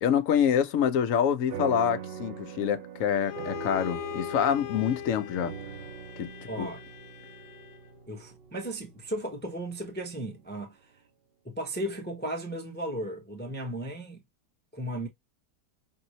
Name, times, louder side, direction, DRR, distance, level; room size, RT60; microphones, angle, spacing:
voice 1, 0.0-5.5 6.2-6.3 6.6-6.7, left 8 dB, 65° left, 0.9 m, -26 dB
sound 1, 1.5-10.2, right 8 dB, 60° right, 0.6 m, -42 dB
Bowed string instrument, 3.2-8.0, left 12 dB, 85° left, 0.6 m, -41 dB
voice 2, 6.5-6.8 8.1-10.8 11.4-14.2 14.7-15.1, right 1 dB, 10° left, 0.6 m, -35 dB
5.6 x 2.6 x 3.0 m
omnidirectional pair, 1.8 m